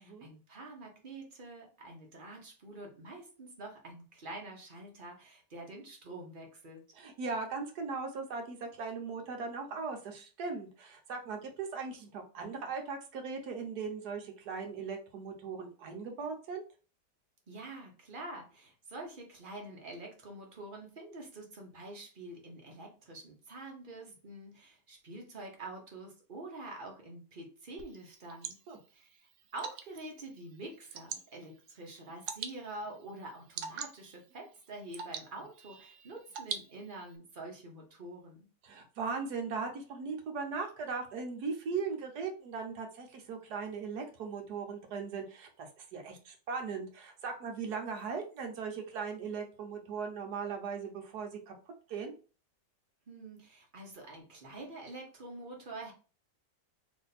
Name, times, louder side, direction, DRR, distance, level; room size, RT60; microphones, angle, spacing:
voice 1, 0.0-6.9 17.5-28.6 28.9-38.5 53.1-55.9, right 2 dB, 40° right, 0 dB, 0.8 m, -46 dB
voice 2, 7.0-16.6 28.7-28.8 38.6-51.5 51.9-52.1, right 5 dB, 70° right, 3 dB, 1.3 m, -38 dB
Water / Drip, 27.8-37.2, right 7 dB, 85° right, 0.6 m, -45 dB
3.3 x 2.7 x 4.0 m, 0.36 s
omnidirectional pair, 1.9 m